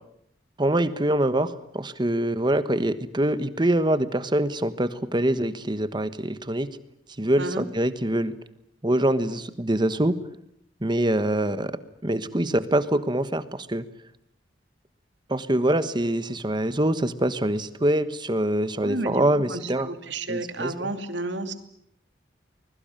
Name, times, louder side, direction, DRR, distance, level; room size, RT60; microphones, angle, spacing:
voice 1, 0.6-6.8 7.2-8.3 8.8-10.2 10.8-11.7 12.0-13.8 15.3-19.9 20.3-20.7, right 1 dB, 25° right, 12 dB, 1.2 m, -24 dB
voice 2, 18.8-21.5, right 2 dB, 70° right, 8 dB, 2.7 m, -32 dB
25.0 x 21.5 x 9.0 m, 0.73 s
head